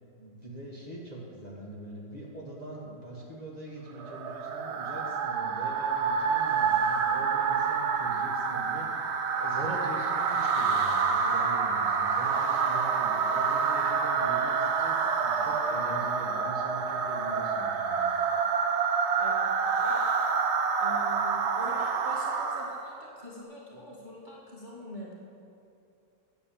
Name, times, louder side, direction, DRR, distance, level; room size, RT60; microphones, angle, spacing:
voice 1, 0.2-18.1, right 1 dB, 25° left, -5 dB, 1.5 m, -42 dB
sound 1, 4.0-22.9, right 5 dB, 70° right, 0.6 m, -27 dB
voice 2, 19.2-20.0 20.8-25.1, left 1 dB, 25° right, -6 dB, 1.4 m, -44 dB
10.0 x 7.1 x 7.2 m, 2.6 s
omnidirectional pair, 2.1 m